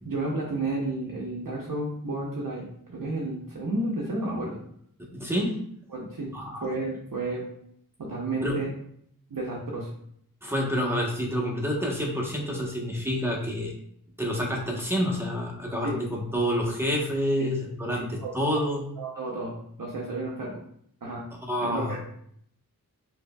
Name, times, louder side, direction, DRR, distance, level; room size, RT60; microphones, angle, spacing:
voice 1, 0.0-4.6 5.9-6.3 6.6-7.5 8.0-8.7 9.3-9.9 15.8-16.0 17.9-18.3 19.0-19.5 19.8-20.6 21.0-21.2 21.6-22.0, right 2 dB, 65° right, -3 dB, 0.7 m, -31 dB
voice 2, 5.0-5.5 6.3-6.7 8.4-8.6 10.4-13.7 14.2-18.9 21.5-22.0, equal, 5° right, -2 dB, 1.0 m, -28 dB
5.1 x 2.7 x 2.3 m, 0.68 s
wide cardioid pair, 55°, 35 cm